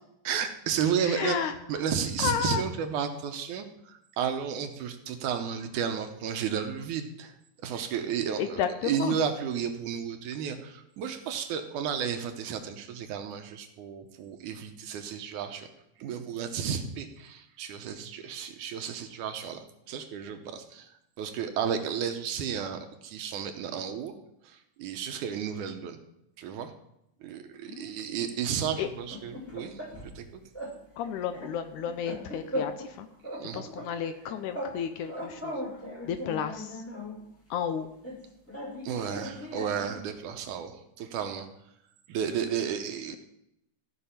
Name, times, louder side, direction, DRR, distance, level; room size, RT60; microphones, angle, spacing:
voice 1, 0.2-7.3 7.6-15.7 16.0-20.9 21.2-24.1 24.4-26.0 26.4-26.7 27.2-29.8 30.2-30.4 33.3-33.7 38.8-41.5 42.1-43.2, right 7 dB, 75° right, 6 dB, 2.2 m, -33 dB
voice 2, 1.1-1.5 2.2-2.6 8.4-9.2 27.7-27.9 28.8-28.9 31.0-33.1 33.5-35.5 36.1-36.8 37.5-37.9, left 8 dB, 75° left, 9 dB, 1.9 m, -32 dB
sound 1, 28.9-30.2 30.5-30.8 31.0-32.9 33.2-34.8 35.0-37.2 38.0-40.0, equal, 5° left, 1.2 m, -38 dB
14.0 x 5.8 x 5.7 m, 0.80 s
omnidirectional pair, 3.9 m